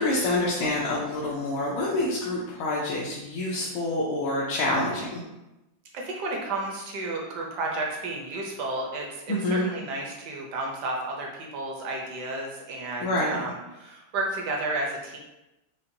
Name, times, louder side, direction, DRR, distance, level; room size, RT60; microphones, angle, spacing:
voice 1, 0.0-5.2 9.3-9.7 13.0-13.4, left 2 dB, 85° left, -5 dB, 1.5 m, -27 dB
voice 2, 5.9-15.2, right 2 dB, 70° right, 0 dB, 1.0 m, -32 dB
5.6 x 2.1 x 2.6 m, 0.97 s
omnidirectional pair, 2.2 m